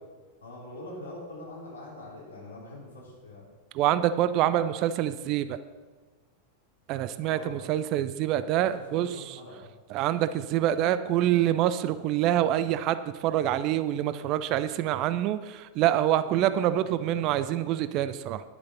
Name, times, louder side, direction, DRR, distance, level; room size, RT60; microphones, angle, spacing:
voice 1, 0.4-3.5 7.2-7.6 8.6-9.7 15.8-15.9 16.2-17.3, left 1 dB, 70° left, -3 dB, 3.6 m, -44 dB
voice 2, 3.7-5.6 6.9-9.4 9.9-18.4, right 12 dB, 40° right, 13 dB, 0.5 m, -26 dB
10.5 x 8.8 x 5.7 m, 1.3 s
figure-of-eight pair, 90°, 0 cm